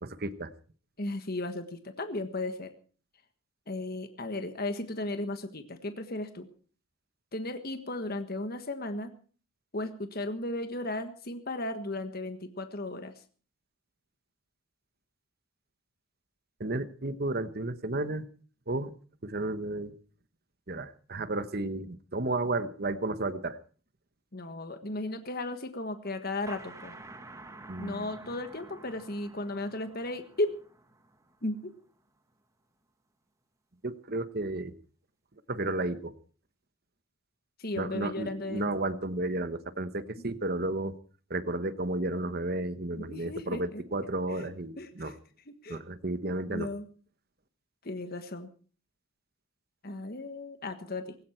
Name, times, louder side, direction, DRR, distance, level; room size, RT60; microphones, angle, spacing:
voice 1, 0.0-0.5 16.6-18.2 18.7-18.9 19.2-19.9 20.7-23.6 27.7-28.1 33.8-34.7 35.5-36.1 37.8-40.9 41.3-45.1 45.7-46.7, right 2 dB, 45° right, 13 dB, 1.1 m, -32 dB
voice 2, 1.0-2.7 3.7-6.5 7.3-9.1 9.7-13.1 24.3-26.9 27.8-30.6 31.4-31.7 37.6-38.7 42.9-43.8 44.3-45.1 45.6-45.8 46.5-46.8 47.8-48.5 49.8-51.2, left 2 dB, 45° left, 8 dB, 1.5 m, -35 dB
sound 1, 26.5-31.9, right 2 dB, 15° right, 1.9 m, -49 dB
18.0 x 17.0 x 4.5 m, 0.40 s
head